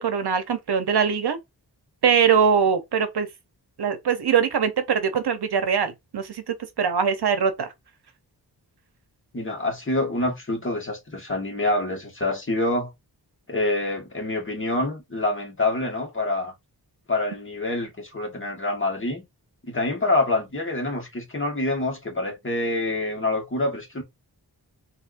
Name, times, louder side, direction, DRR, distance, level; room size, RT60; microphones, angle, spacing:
voice 1, 0.0-1.4 2.0-3.3 3.8-7.7, right 7 dB, 70° right, 0.8 m, -22 dB
voice 2, 9.3-12.9 13.5-16.5 17.1-19.2 19.6-24.0, left 2 dB, 30° left, 1.5 m, -26 dB
4.2 x 2.8 x 2.5 m
wide cardioid pair, 80°, 41 cm